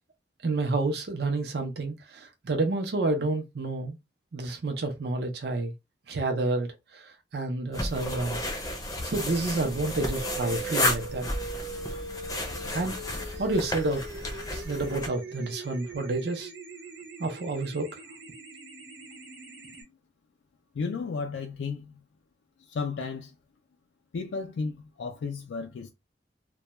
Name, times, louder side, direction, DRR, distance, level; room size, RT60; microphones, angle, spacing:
voice 1, 0.4-4.0 4.3-5.7 6.1-8.4 9.0-11.2 12.7-13.0 13.4-14.1 14.5-16.5 17.2-18.0, right 2 dB, 60° right, 0.5 m, -29 dB
sound 1, 7.7-15.1, left 1 dB, 20° left, 0.5 m, -32 dB
sound 2, 9.8-19.8, right 4 dB, 85° right, 0.8 m, -41 dB
voice 2, 20.7-22.0 22.7-23.3 24.1-25.9, left 4 dB, 90° left, 0.4 m, -33 dB
2.2 x 2.2 x 2.8 m
head